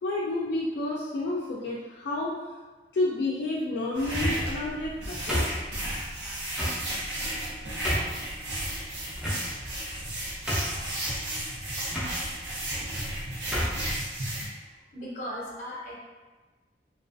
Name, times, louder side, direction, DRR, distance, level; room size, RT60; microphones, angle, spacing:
voice 1, 0.0-2.4 2.9-5.6 10.8-11.0 11.8-11.9 12.2-12.3, left 2 dB, 70° left, -5 dB, 0.3 m, -30 dB
sound 1, 3.9-14.5, right 1 dB, 85° right, 0.7 m, -33 dB
sound 2, 4.0-4.6 5.3-6.0 6.6-6.8 7.4-7.5 7.8-8.2 9.2-9.7 10.1-10.2 10.5-10.9 11.9-12.1 13.0-13.1 13.5-13.8, equal, 5° right, 0.4 m, -30 dB
voice 2, 14.9-15.9, equal, 45° left, -5 dB, 0.7 m, -37 dB
2.3 x 2.3 x 2.5 m, 1.3 s
head